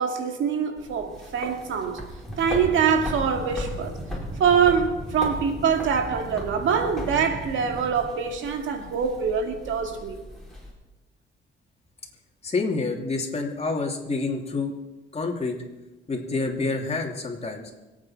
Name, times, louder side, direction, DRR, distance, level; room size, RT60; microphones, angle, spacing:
voice 1, 0.0-2.0 2.4-3.9 4.4-10.2, right 6 dB, 75° right, 2.0 m, -24 dB
sound 1, 0.8-10.7, equal, ahead, 4.8 m, -38 dB
sound 2, 2.2-8.1, equal, 20° right, 4.8 m, -39 dB
voice 2, 12.4-14.7 15.1-15.5 16.1-17.6, left 3 dB, 30° left, 2.9 m, -28 dB
25.5 x 8.9 x 4.4 m
cardioid pair, 90°, 20 cm